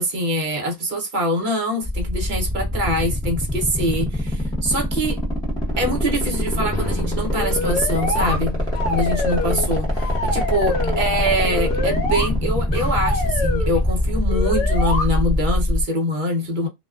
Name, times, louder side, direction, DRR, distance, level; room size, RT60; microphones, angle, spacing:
voice 1, 0.0-5.2 5.8-8.5 8.9-16.7, equal, 45° right, 0.9 m, -24 dB
sound 1, 1.8-15.8, equal, 5° left, 0.8 m, -24 dB
sound 2, 5.5-14.2, left 3 dB, 35° left, 0.5 m, -33 dB
sound 3, 7.3-8.4 8.7-9.7 9.9-11.0 11.5-12.3 12.7-13.7 14.3-15.1, left 2 dB, 70° left, 1.1 m, -26 dB
2.4 x 2.3 x 2.3 m
omnidirectional pair, 1.3 m